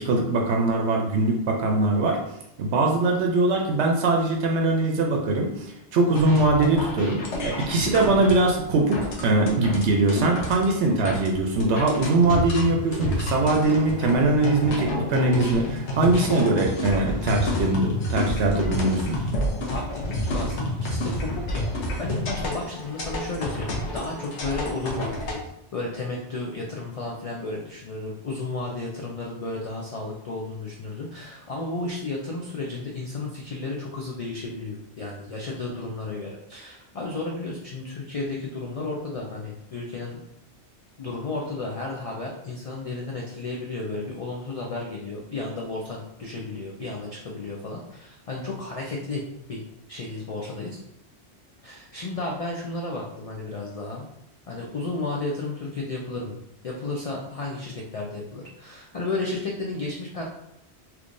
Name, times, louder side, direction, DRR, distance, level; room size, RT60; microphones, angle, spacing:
voice 1, 0.0-2.2 2.6-19.2, right 2 dB, 75° right, 1 dB, 0.8 m, -22 dB
sound 1, 6.1-25.3, left 1 dB, 80° left, 1.1 m, -29 dB
voice 2, 19.7-25.4 25.7-40.2 41.0-49.6 49.9-50.8 51.6-54.0 54.5-56.4 56.6-60.2, left 2 dB, 55° left, -1 dB, 0.4 m, -33 dB
3.5 x 3.0 x 2.5 m, 0.81 s
omnidirectional pair, 1.2 m